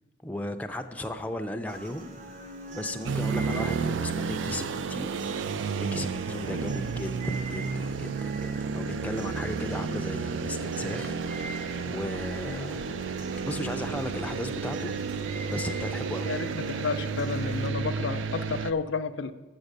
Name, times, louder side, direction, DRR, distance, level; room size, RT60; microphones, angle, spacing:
voice 1, 0.2-2.1 2.7-5.5 5.8-11.5 11.8-13.0 13.4-14.9 15.5-16.3, left 1 dB, 10° left, 5 dB, 0.4 m, -36 dB
sound 1, 1.7-17.7, right 1 dB, 40° right, 0.8 m, -42 dB
sound 2, 3.1-18.7, right 5 dB, 85° right, 0.4 m, -32 dB
voice 2, 16.3-19.3, left 5 dB, 80° left, 11 dB, 0.4 m, -31 dB
7.3 x 6.1 x 6.6 m, 1.3 s
head